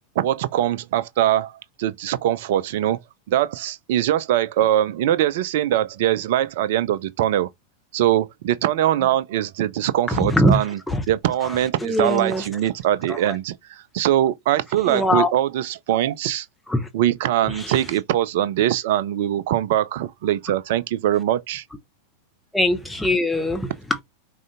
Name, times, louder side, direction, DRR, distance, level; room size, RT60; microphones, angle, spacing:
voice 1, 0.2-3.0 3.3-7.5 7.9-10.8 11.1-16.5 16.9-21.6, right 12 dB, 55° right, 0.4 m, -22 dB
voice 2, 10.1-10.6 10.9-11.0 11.4-12.4 13.1-13.4 14.9-15.3 16.7-16.9 17.5-17.8 22.5-24.0, left 1 dB, 5° left, 0.8 m, -22 dB
4.8 x 2.6 x 2.5 m
figure-of-eight pair, 90°, 0 cm